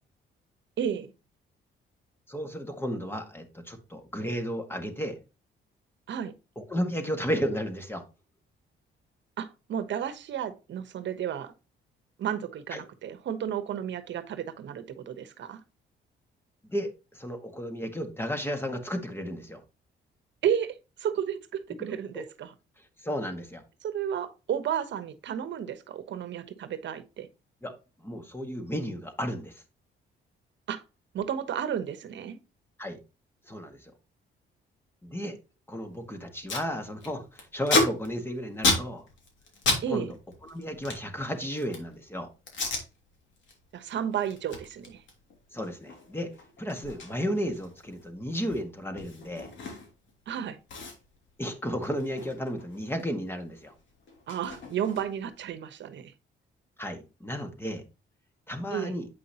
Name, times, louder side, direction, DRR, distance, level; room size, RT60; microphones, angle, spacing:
voice 1, 0.8-1.1 6.1-6.3 9.4-11.5 12.2-15.6 20.4-22.5 23.8-27.3 30.7-30.8 31.1-32.4 39.8-40.1 43.7-45.0 50.3-50.6 54.3-56.1 58.7-59.0, right 9 dB, 65° right, 1.1 m, -32 dB
voice 2, 2.3-5.2 6.6-8.0 12.7-12.8 16.6-19.6 22.1-22.2 22.8-23.6 27.6-27.7 28.0-29.6 32.8-33.0 33.5-33.9 35.0-35.4 35.7-39.1 39.9-40.1 40.4-42.3 45.5-46.3 46.6-49.5 51.4-53.7 56.8-57.8 58.5-59.1, equal, 10° left, 1.7 m, -33 dB
Packing tape duct tape, 35.9-36.0 36.2-36.7 37.0-39.8 40.1-41.9 42.5-42.8 43.3-43.5 43.9-50.1 50.3-50.4 50.7-53.1 53.3-55.3, left 3 dB, 70° left, 3.0 m, -32 dB
8.4 x 5.5 x 2.8 m
cardioid pair, 90°, 20 cm